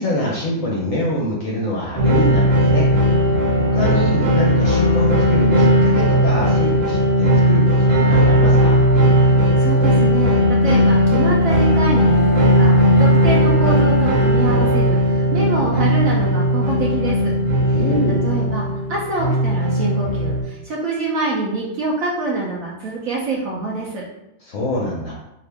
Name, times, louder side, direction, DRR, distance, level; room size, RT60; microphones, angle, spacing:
voice 1, 0.0-2.9 3.6-8.8 17.6-18.4 24.4-25.1, left 1 dB, 65° left, -4 dB, 0.8 m, -25 dB
sound 1, 2.0-20.4, equal, 85° right, 1.7 m, -16 dB
voice 2, 9.6-17.3 18.2-24.0, right 3 dB, 65° right, -4 dB, 0.9 m, -25 dB
Bowed string instrument, 11.5-15.2, right 1 dB, 25° left, 0.7 m, -31 dB
3.7 x 2.5 x 3.3 m, 0.89 s
omnidirectional pair, 2.0 m